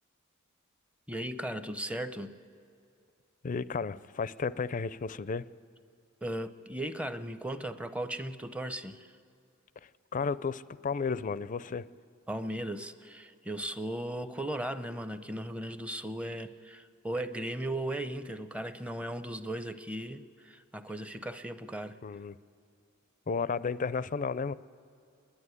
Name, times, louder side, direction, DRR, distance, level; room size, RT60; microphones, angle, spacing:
voice 1, 1.1-2.4 6.2-9.2 12.3-22.0, right 1 dB, 5° right, 11 dB, 0.6 m, -37 dB
voice 2, 3.4-5.5 9.8-11.9 22.0-22.3 23.3-24.5, left 5 dB, 40° left, 18 dB, 0.4 m, -33 dB
28.5 x 11.5 x 9.7 m, 2.5 s
head